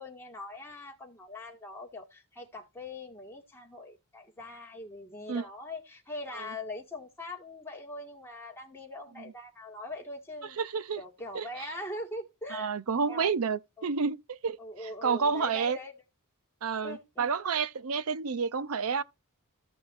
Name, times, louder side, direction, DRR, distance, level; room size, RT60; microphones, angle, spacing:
voice 1, 0.0-10.6 11.0-12.8 13.1-13.3 13.8-13.9 14.6-15.9 16.8-17.3, left 2 dB, 10° left, 2.1 m, -42 dB
voice 2, 10.6-11.0 11.3-11.7 12.5-14.6 15.0-15.8 16.6-19.0, right 5 dB, 75° right, 0.6 m, -30 dB
14.5 x 6.0 x 2.6 m
head